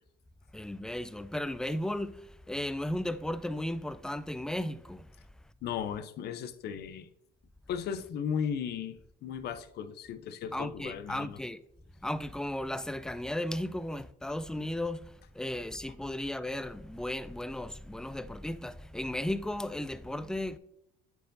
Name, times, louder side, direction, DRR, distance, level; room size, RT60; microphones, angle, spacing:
voice 1, 0.5-5.1 10.5-11.6 12.0-20.6, left 1 dB, 5° left, 0.3 m, -35 dB
voice 2, 5.6-7.1 7.7-11.4, left 7 dB, 60° left, 0.6 m, -36 dB
9.0 x 4.6 x 2.6 m
supercardioid pair, 80°, 19 cm